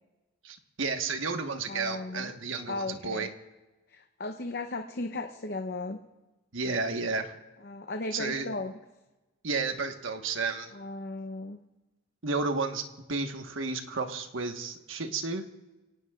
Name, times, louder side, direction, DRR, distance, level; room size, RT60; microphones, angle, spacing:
voice 1, 0.4-3.3 6.5-7.3 8.1-8.5 9.4-10.7 12.2-15.4, right 4 dB, 80° right, 6 dB, 1.4 m, -32 dB
voice 2, 1.7-2.3 2.7-3.3 3.9-6.0 7.6-8.7 10.7-11.6, left 2 dB, 50° left, 5 dB, 0.8 m, -36 dB
27.5 x 18.0 x 2.4 m, 1.1 s
head